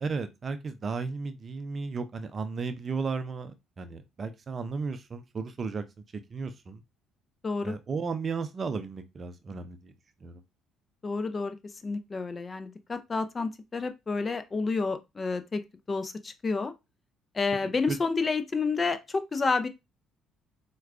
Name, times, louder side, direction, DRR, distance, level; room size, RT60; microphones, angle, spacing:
voice 1, 0.0-5.8 6.3-6.8 7.6-9.9 10.2-10.4 17.6-18.0, right 4 dB, 40° right, 0.5 m, -34 dB
voice 2, 7.4-7.8 11.0-11.6 11.8-15.6 15.9-16.7 17.3-19.7, left 4 dB, 35° left, 0.5 m, -29 dB
4.5 x 2.2 x 2.4 m
hypercardioid pair, 60°, 0 cm